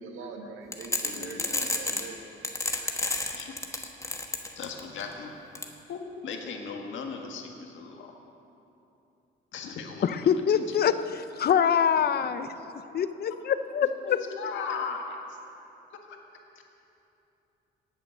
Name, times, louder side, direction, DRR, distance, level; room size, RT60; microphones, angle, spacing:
voice 1, 0.0-2.2, right 4 dB, 85° right, 3 dB, 1.5 m, -42 dB
sound 1, 0.7-2.1 2.4-5.0 5.5-5.6, left 2 dB, 15° left, 1.3 m, -29 dB
voice 2, 1.2-1.7 2.7-3.5 4.6-5.3 5.9-8.1 9.5-10.6 12.1-12.9 14.0-15.4 16.0-16.2 16.6-16.7, left 5 dB, 75° left, 2 dB, 1.7 m, -38 dB
voice 3, 10.0-12.5 12.9-14.2, left 8 dB, 55° left, 12 dB, 0.6 m, -25 dB
18.0 x 7.5 x 6.4 m, 2.9 s
cardioid pair, 90°, 20 cm